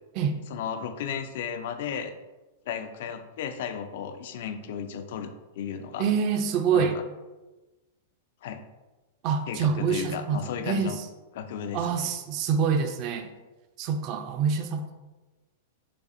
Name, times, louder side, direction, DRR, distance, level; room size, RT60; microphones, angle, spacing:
voice 1, 0.5-2.1 2.7-6.1 6.7-7.0 8.4-8.6 9.5-11.0 11.3-12.1, left 7 dB, 65° left, 9 dB, 0.4 m, -34 dB
voice 2, 6.0-7.0 9.2-11.1 11.7-13.3 13.8-15.0, right 6 dB, 45° right, 6 dB, 0.4 m, -26 dB
6.6 x 2.4 x 2.6 m, 1.1 s
hypercardioid pair, 135°, 0 cm